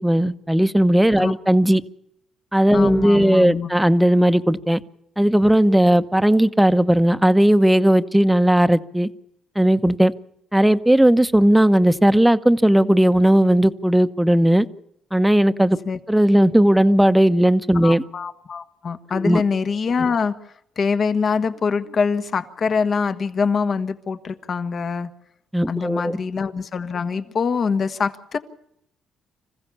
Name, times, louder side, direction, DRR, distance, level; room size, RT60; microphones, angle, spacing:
voice 1, 0.0-1.8 2.5-4.8 5.2-9.1 9.6-10.1 10.5-14.7 15.1-15.8 16.1-18.0 19.2-19.4 25.5-26.2, right 1 dB, 5° right, 12 dB, 1.0 m, -16 dB
voice 2, 2.7-3.7 15.8-16.0 17.8-20.3 20.8-25.1 25.7-28.4, left 5 dB, 50° left, 10 dB, 1.6 m, -24 dB
26.5 x 15.5 x 7.1 m, 0.78 s
cardioid pair, 90°, 0 cm